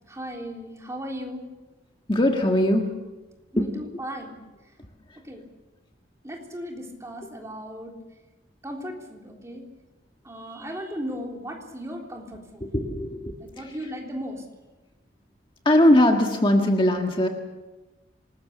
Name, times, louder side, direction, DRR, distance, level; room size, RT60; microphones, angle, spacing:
voice 1, 0.1-1.5 3.5-4.7 5.2-5.4 6.2-7.9 8.6-9.6 10.2-12.7 13.4-14.4, equal, 15° right, 0 dB, 3.6 m, -36 dB
voice 2, 2.1-2.9 3.6-3.7 12.7-13.3 15.6-17.3, left 1 dB, 25° left, 3 dB, 1.7 m, -20 dB
27.0 x 20.0 x 6.9 m, 1.1 s
head